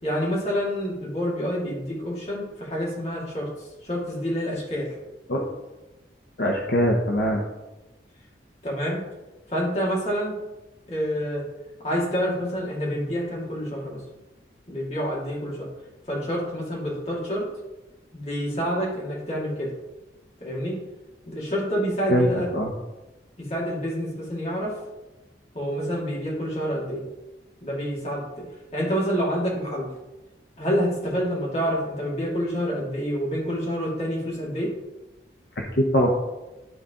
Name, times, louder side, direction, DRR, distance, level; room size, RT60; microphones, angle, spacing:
voice 1, 0.0-5.0 8.6-9.0 9.5-10.4 10.9-11.4 11.8-14.0 14.7-15.7 16.1-17.5 18.1-19.7 20.4-20.8 21.3-22.5 23.4-24.8 25.5-27.0 27.6-28.5 28.7-29.9 30.6-34.7, equal, 35° left, -5 dB, 2.6 m, -27 dB
voice 2, 6.4-7.4 22.1-22.3 22.5-22.7 35.6-36.1, equal, 60° left, -1 dB, 0.9 m, -22 dB
12.0 x 4.1 x 3.8 m, 1.1 s
head